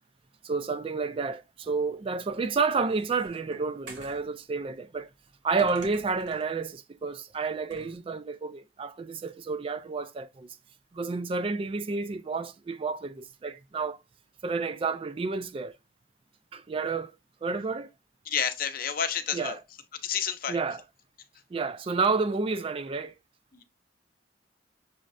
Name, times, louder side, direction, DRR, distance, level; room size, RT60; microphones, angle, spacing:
voice 1, 0.4-5.1 5.4-10.6 10.9-14.0 14.4-15.8 16.5-17.1 17.4-17.9 19.3-19.6 20.5-20.8 21.5-23.1, right 4 dB, 30° right, 0.3 m, -30 dB
sound 1, 2.3-4.3 5.6-6.5 7.7-8.0, right 1 dB, 80° right, 1.8 m, -46 dB
voice 2, 18.3-19.6 20.0-20.6 23.5-23.6, left 8 dB, 50° left, 0.7 m, -30 dB
6.3 x 3.1 x 2.5 m
head